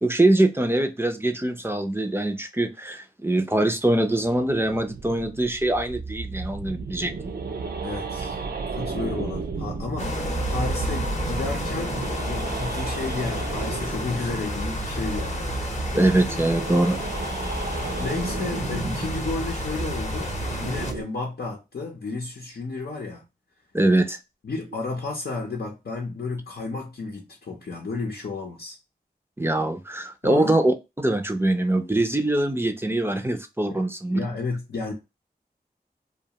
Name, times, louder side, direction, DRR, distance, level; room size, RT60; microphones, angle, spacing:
voice 1, 0.0-7.1 15.9-17.0 23.7-24.2 29.4-34.2, right 1 dB, 15° right, 0.5 m, -23 dB
sound 1, 4.0-21.0, right 4 dB, 70° right, 0.5 m, -33 dB
voice 2, 7.8-8.4 8.7-15.8 18.0-20.3 20.6-23.2 24.4-28.8 30.2-30.5 33.7-33.8 34.1-34.9, left 3 dB, 75° left, 0.7 m, -32 dB
sound 2, 10.0-20.9, left 2 dB, 45° left, 0.8 m, -31 dB
2.4 x 2.3 x 2.8 m
cardioid pair, 40°, 17 cm